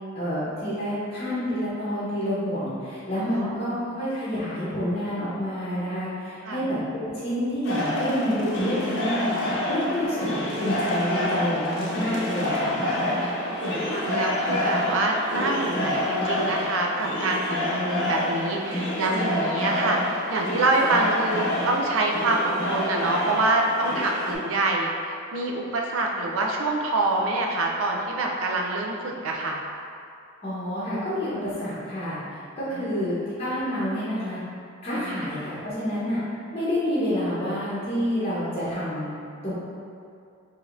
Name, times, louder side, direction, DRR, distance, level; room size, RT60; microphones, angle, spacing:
voice 1, 0.1-9.3 9.7-12.8 30.4-34.4 34.8-36.2 36.5-39.1 39.4-39.5, equal, 30° left, -10 dB, 0.9 m, -28 dB
voice 2, 3.2-3.8 6.4-6.7 10.0-10.4 12.8-29.6 32.7-32.9 34.9-35.3, right 2 dB, 75° right, 0 dB, 0.5 m, -26 dB
sound 1, 7.6-24.3, left 1 dB, 60° left, 0.7 m, -28 dB
4.9 x 2.8 x 2.5 m, 2.5 s
head